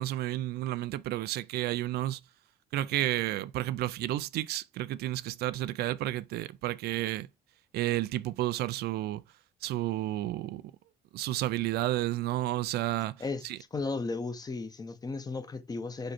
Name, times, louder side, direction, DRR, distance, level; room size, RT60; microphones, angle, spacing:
voice 1, 0.0-2.2 2.7-7.3 7.7-9.2 9.6-10.6 11.1-13.2 13.4-13.6, right 15 dB, 70° right, 0.4 m, -31 dB
voice 2, 13.7-16.1, left 3 dB, 20° left, 0.8 m, -35 dB
5.1 x 4.6 x 4.3 m
cardioid pair, 110°, 17 cm